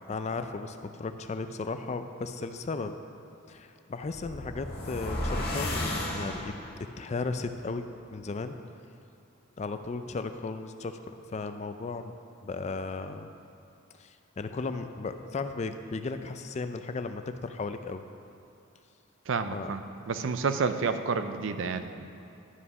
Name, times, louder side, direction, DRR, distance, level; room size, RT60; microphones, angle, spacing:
voice 1, 0.1-3.0 3.5-8.6 9.6-11.0 11.3-12.1 12.4-13.3 14.0-18.0 19.5-19.7, left 3 dB, 35° left, 9 dB, 0.4 m, -35 dB
sound 1, 4.0-6.9, left 1 dB, 50° left, 1.5 m, -33 dB
voice 2, 19.3-22.1, right 5 dB, 65° right, 9 dB, 0.5 m, -30 dB
11.5 x 5.6 x 5.4 m, 2.6 s
head